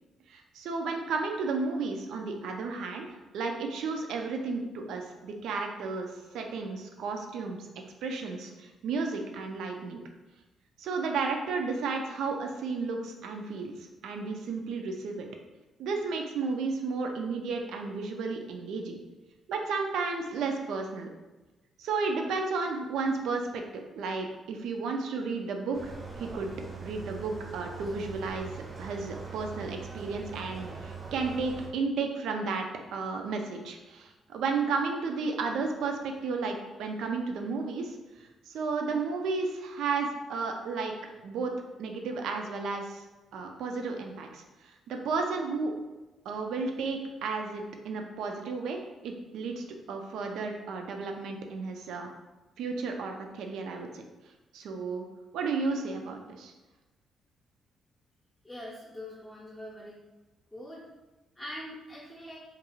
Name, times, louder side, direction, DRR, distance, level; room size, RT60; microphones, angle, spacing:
voice 1, 0.3-7.7 8.0-10.0 10.8-13.7 14.0-15.3 15.8-19.0 19.5-21.1 21.8-25.9 26.2-26.5 26.8-28.5 28.8-32.7 32.9-40.9 41.2-41.5 41.8-43.0 43.3-45.7 46.3-52.1 52.6-54.0 54.5-55.1 55.3-56.5, right 4 dB, 80° right, 3 dB, 0.3 m, -33 dB
sound 1, 25.7-31.7, right 4 dB, 35° right, 0.6 m, -42 dB
voice 2, 58.4-60.0 60.5-60.8 61.4-62.4, left 1 dB, 20° left, -6 dB, 0.6 m, -43 dB
2.4 x 2.3 x 3.0 m, 1.1 s
cardioid pair, 90°, 0 cm